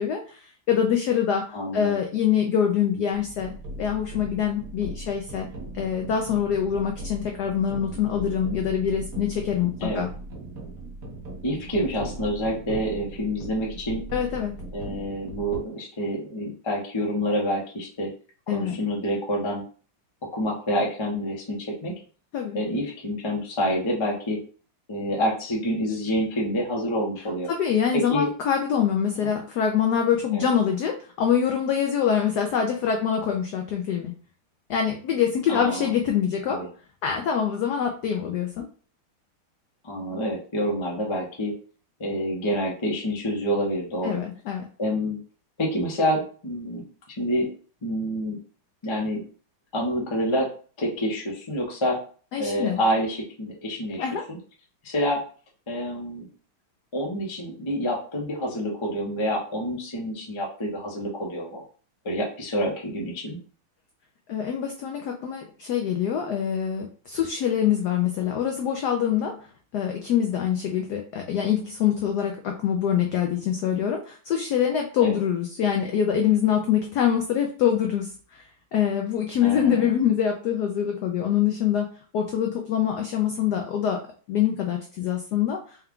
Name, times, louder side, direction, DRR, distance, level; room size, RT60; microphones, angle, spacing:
voice 1, 0.0-1.5 1.7-5.5 5.7-10.1 14.1-14.5 18.5-18.8 22.3-22.6 27.5-34.1 34.7-36.6 37.0-38.7 44.0-44.6 52.3-52.8 54.0-54.2 64.3-69.4 69.7-78.4 78.7-81.9 82.1-84.0 84.3-85.8, left 8 dB, 80° left, 3 dB, 0.9 m, -25 dB
voice 2, 1.5-2.0 9.8-10.1 11.4-14.0 14.7-18.1 18.5-19.6 20.3-21.9 22.5-24.4 24.9-27.5 27.9-28.3 29.2-29.3 30.3-30.5 35.5-35.9 36.5-36.7 39.8-41.5 42.0-44.2 44.8-45.2 45.6-46.8 47.2-47.5 47.8-48.4 48.8-49.2 49.7-50.5 50.8-52.0 52.4-54.4 54.8-55.2 55.7-56.3 56.9-61.6 62.0-63.4 75.0-75.1 79.4-79.9, equal, 35° left, -1 dB, 0.4 m, -27 dB
sound 1, 3.1-15.6, right 1 dB, 55° right, 1.2 m, -38 dB
4.4 x 2.3 x 3.6 m, 0.41 s
omnidirectional pair, 2.3 m